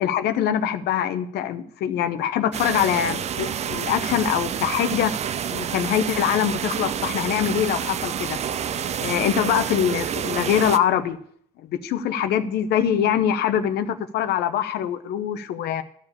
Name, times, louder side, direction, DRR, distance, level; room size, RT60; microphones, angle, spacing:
voice 1, 0.0-5.1 5.5-8.4 9.0-11.2 11.7-15.8, left 9 dB, 75° left, 9 dB, 0.7 m, -23 dB
sound 1, 2.5-10.8, right 8 dB, 40° right, 0.5 m, -28 dB
12.5 x 4.9 x 8.4 m, 0.64 s
cardioid pair, 110°, 17 cm